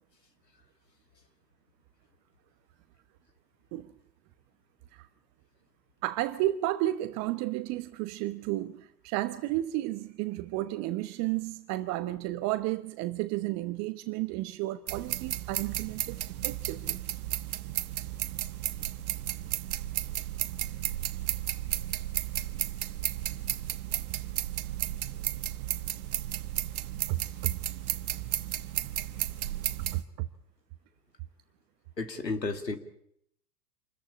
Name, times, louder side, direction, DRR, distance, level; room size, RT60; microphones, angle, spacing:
voice 1, 6.0-17.0 27.1-27.5 29.8-30.3, right 16 dB, 35° right, 11 dB, 1.1 m, -32 dB
sound 1, 14.9-30.0, right 12 dB, 60° right, 1.4 m, -33 dB
voice 2, 32.0-32.8, left 3 dB, 85° left, 8 dB, 2.7 m, -32 dB
27.0 x 14.5 x 10.0 m, 0.74 s
figure-of-eight pair, 100°, 48 cm